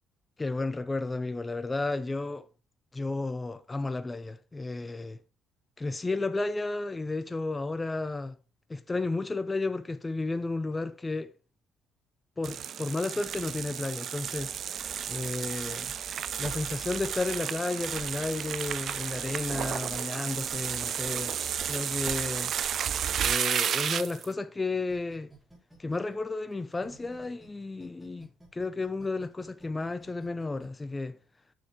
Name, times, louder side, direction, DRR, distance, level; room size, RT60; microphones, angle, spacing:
voice 1, 0.4-2.5 2.9-5.2 5.8-8.4 8.7-11.3 12.4-15.9 16.4-21.3 21.7-22.5 23.2-25.3 25.8-31.2, left 3 dB, 20° left, 0.5 m, -33 dB
sound 1, 12.4-24.3, right 8 dB, 55° right, 0.4 m, -32 dB
sound 2, 24.9-27.5 27.8-30.7, right 2 dB, 5° right, 3.3 m, -54 dB
6.5 x 6.3 x 3.6 m
supercardioid pair, 85°, 0 cm